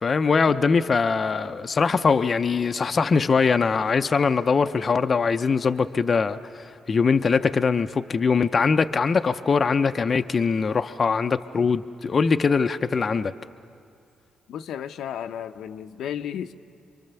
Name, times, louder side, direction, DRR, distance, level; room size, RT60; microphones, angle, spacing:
voice 1, 0.0-13.3, left 5 dB, 35° left, 8 dB, 0.5 m, -22 dB
voice 2, 14.5-16.5, left 9 dB, 85° left, 8 dB, 0.7 m, -33 dB
27.0 x 24.0 x 6.9 m, 2.3 s
cardioid pair, 130°, 0 cm